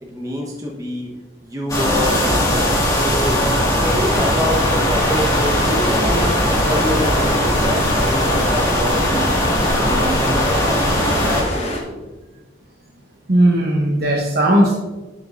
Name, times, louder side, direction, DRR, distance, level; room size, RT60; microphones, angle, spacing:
voice 1, 0.1-1.1 1.4-9.3 9.6-12.0, left 1 dB, 20° right, -2 dB, 1.1 m, -27 dB
sound 1, 1.7-11.4, equal, 15° left, 1.8 m, -19 dB
sound 2, 4.1-11.8, left 1 dB, 35° left, 1.4 m, -28 dB
voice 2, 13.3-14.7, right 1 dB, 50° right, -1 dB, 0.9 m, -16 dB
11.5 x 6.1 x 2.6 m, 1.2 s
head